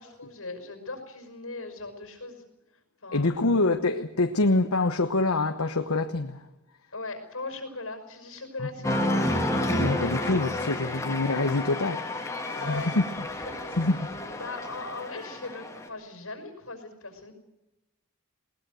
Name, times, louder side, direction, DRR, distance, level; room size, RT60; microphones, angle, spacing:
voice 1, 0.0-2.4 3.0-3.5 6.9-9.2 11.4-11.7 12.6-12.9 13.4-13.8 14.3-17.3, left 3 dB, 70° left, 5.6 m, -39 dB
voice 2, 3.1-6.4 8.6-8.7 9.8-12.0 12.5-13.1 13.8-14.1, left 2 dB, 85° left, 1.1 m, -25 dB
Cheering, 8.8-15.9, left 1 dB, 15° left, 2.8 m, -30 dB
20.5 x 19.5 x 8.0 m
head